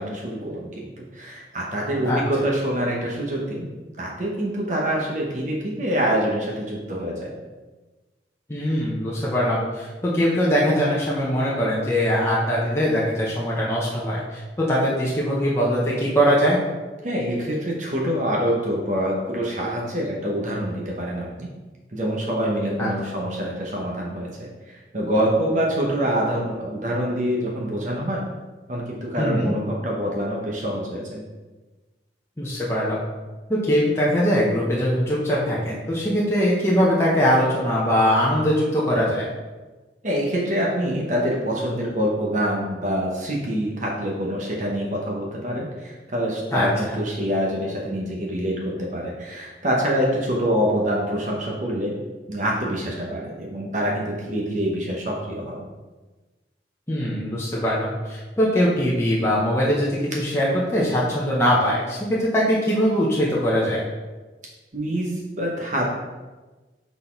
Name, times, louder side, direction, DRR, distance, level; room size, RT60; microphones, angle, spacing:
voice 1, 0.0-3.7 4.0-7.3 17.0-21.5 21.9-28.2 28.7-31.2 40.0-51.9 52.3-55.6 64.7-65.9, equal, 45° right, -2 dB, 0.9 m, -25 dB
voice 2, 8.5-16.6 22.8-22.9 29.2-29.5 32.4-33.0 33.5-39.3 46.5-46.9 56.9-63.8, equal, 15° left, -6 dB, 0.9 m, -21 dB
6.1 x 4.1 x 4.5 m, 1.2 s
head